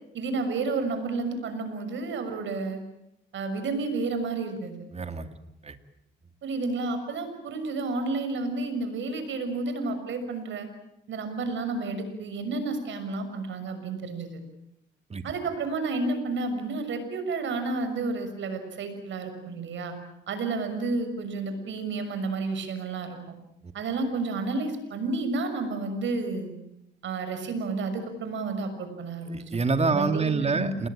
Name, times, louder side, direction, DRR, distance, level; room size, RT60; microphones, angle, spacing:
voice 1, 0.1-2.8 3.3-4.7 6.4-10.7 11.1-14.4 15.2-19.9 20.3-23.2 23.7-26.5 27.0-29.4 29.9-30.8, right 3 dB, 70° right, 8 dB, 6.4 m, -31 dB
voice 2, 4.9-5.3 5.6-5.8 15.1-15.2 23.6-23.7 29.3-30.9, right 4 dB, 30° right, 8 dB, 2.6 m, -27 dB
28.5 x 20.5 x 9.0 m, 0.83 s
cardioid pair, 90°, 20 cm